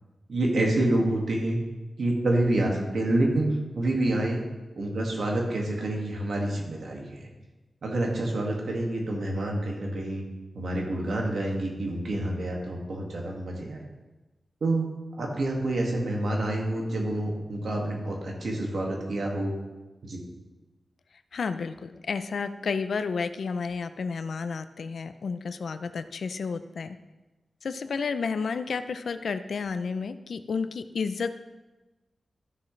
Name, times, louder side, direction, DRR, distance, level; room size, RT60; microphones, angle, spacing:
voice 1, 0.3-1.6 2.0-4.4 4.8-7.3 7.8-10.2 10.5-13.8 14.6-14.9 15.2-19.5 20.0-20.2, right 1 dB, 80° right, -1 dB, 2.0 m, -27 dB
voice 2, 21.3-27.0 27.6-31.3, left 5 dB, 80° left, 11 dB, 0.5 m, -31 dB
13.5 x 6.5 x 3.2 m, 1.1 s
cardioid pair, 55°, 0 cm